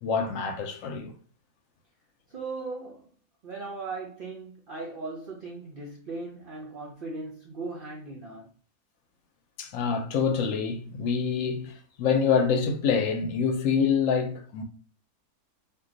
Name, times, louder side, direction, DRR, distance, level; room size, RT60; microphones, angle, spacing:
voice 1, 0.0-1.1 9.6-14.6, left 6 dB, 65° left, 0.9 m, -26 dB
voice 2, 2.3-3.1 3.4-8.5, right 3 dB, 75° right, 0.5 m, -38 dB
2.5 x 2.2 x 3.7 m
omnidirectional pair, 1.6 m